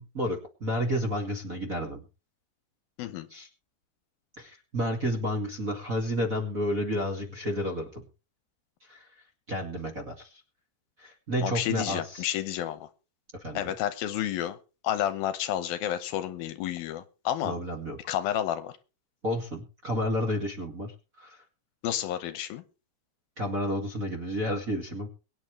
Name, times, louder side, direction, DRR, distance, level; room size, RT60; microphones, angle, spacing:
voice 1, 0.0-2.0 3.3-3.5 4.4-8.0 8.9-9.0 9.5-10.3 11.0-12.2 13.4-13.6 17.4-18.0 19.2-20.9 21.2-21.4 23.4-25.1, equal, 30° right, 2.0 m, -31 dB
voice 2, 11.4-12.9 13.5-14.6 14.8-17.6 18.1-18.7 21.8-22.6, left 11 dB, 75° left, 2.5 m, -30 dB
23.0 x 9.6 x 3.3 m
omnidirectional pair, 4.5 m